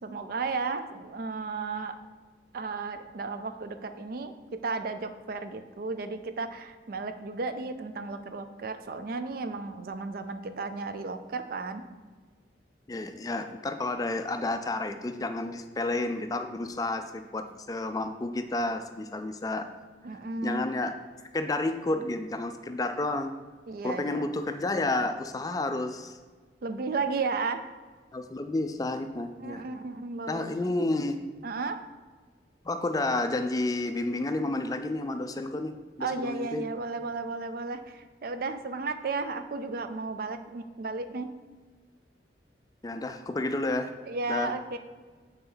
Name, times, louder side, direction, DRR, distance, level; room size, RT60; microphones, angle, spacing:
voice 1, 0.0-2.0 2.5-11.8 20.0-20.6 23.7-24.3 26.6-27.6 29.4-30.5 31.4-31.8 36.0-41.3 44.1-44.8, right 4 dB, 55° right, 9 dB, 0.4 m, -34 dB
voice 2, 12.9-19.7 20.1-20.9 21.3-23.3 23.8-26.2 28.1-29.6 30.3-31.2 32.7-36.6 42.8-43.9 44.3-44.5, left 2 dB, 20° left, 7 dB, 0.3 m, -31 dB
6.8 x 4.3 x 3.9 m, 1.4 s
head